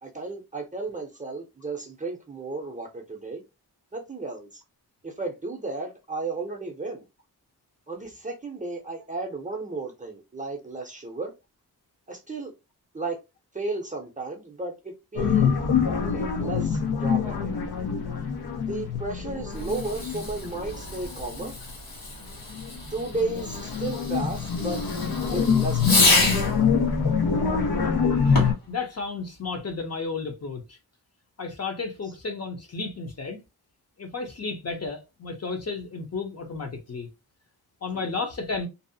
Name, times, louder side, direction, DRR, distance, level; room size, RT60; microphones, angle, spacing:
voice 1, 0.0-3.4 3.9-4.6 5.0-7.0 7.9-11.3 12.1-12.5 12.9-13.2 13.5-15.5 16.0-17.5 18.7-21.6 22.9-24.8 25.2-26.4 37.9-38.1, right 3 dB, 20° right, 0.5 m, -34 dB
sound 1, 15.2-21.7 22.2-28.5, left 6 dB, 90° left, 0.7 m, -25 dB
Fireworks, 19.5-26.6 28.2-28.7, left 2 dB, 65° left, 1.4 m, -28 dB
voice 2, 28.7-30.8 31.4-33.4 34.0-37.1 37.8-38.7, left 4 dB, 40° left, 0.6 m, -33 dB
2.6 x 2.0 x 2.6 m
wide cardioid pair, 110°, 38 cm